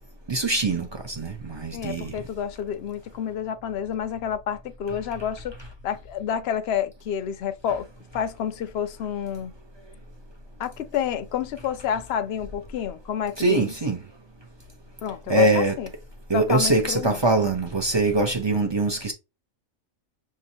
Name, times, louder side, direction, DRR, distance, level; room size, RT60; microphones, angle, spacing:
voice 1, 0.3-2.2 13.4-14.0 15.3-15.8 16.3-19.1, right 2 dB, 30° right, 0.5 m, -23 dB
voice 2, 1.7-5.5 5.8-7.9 8.1-9.5 10.6-13.7 15.0-15.9 16.3-17.2, left 8 dB, 65° left, 0.7 m, -29 dB
6.2 x 2.8 x 2.7 m
omnidirectional pair, 1.4 m